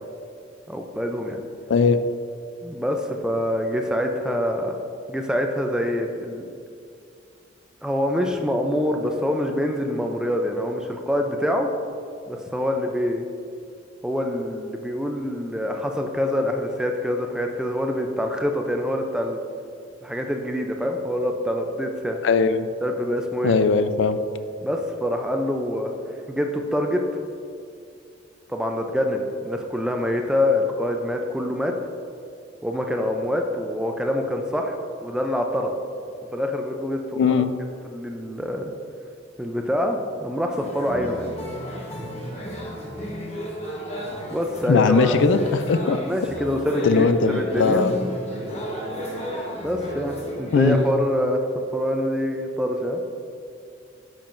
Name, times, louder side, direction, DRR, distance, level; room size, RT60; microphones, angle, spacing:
voice 1, 0.7-1.4 2.6-4.8 5.1-6.5 7.8-11.7 12.3-13.3 14.0-19.4 20.0-22.2 22.8-23.6 24.6-27.2 28.5-31.7 32.6-35.7 36.3-37.4 37.9-38.7 39.4-41.3 44.3-45.2 45.8-47.8 49.5-51.4 51.7-53.0, left 1 dB, 5° right, 3 dB, 0.4 m, -25 dB
voice 2, 22.2-22.7 23.4-24.2 37.2-37.5 44.7-46.0 46.8-47.9 50.5-50.8, left 4 dB, 65° left, 10 dB, 0.3 m, -19 dB
sound 1, 40.6-50.9, equal, 30° left, 1.0 m, -33 dB
8.9 x 5.5 x 2.5 m, 2.5 s
head